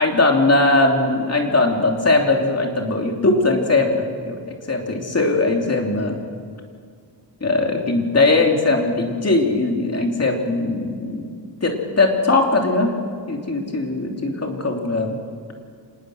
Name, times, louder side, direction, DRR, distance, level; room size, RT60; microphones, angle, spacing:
voice 1, 0.0-4.4 4.7-6.2 7.4-11.3 11.6-12.9 13.3-15.2, left 2 dB, 40° left, 2 dB, 3.0 m, -20 dB
26.0 x 19.5 x 6.4 m, 2.1 s
wide cardioid pair, 130°, 39 cm